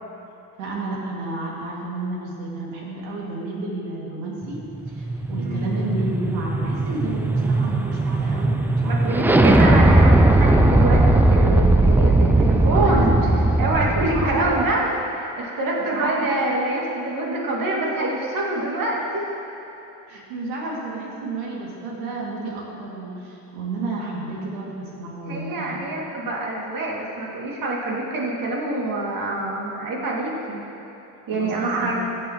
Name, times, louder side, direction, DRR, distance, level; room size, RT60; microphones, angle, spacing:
voice 1, 0.6-9.7 11.9-12.0 12.6-13.3 14.1-14.7 15.9-16.3 20.1-26.0 31.3-32.0, right 2 dB, 75° right, -3 dB, 2.5 m, -31 dB
sound 1, 4.5-14.7, right 2 dB, 5° right, 0.4 m, -18 dB
voice 2, 8.9-13.1 13.6-19.2 25.3-30.6 31.3-32.1, right 2 dB, 45° right, -3 dB, 2.6 m, -25 dB
15.5 x 8.9 x 3.1 m, 2.9 s
hypercardioid pair, 75°, 46 cm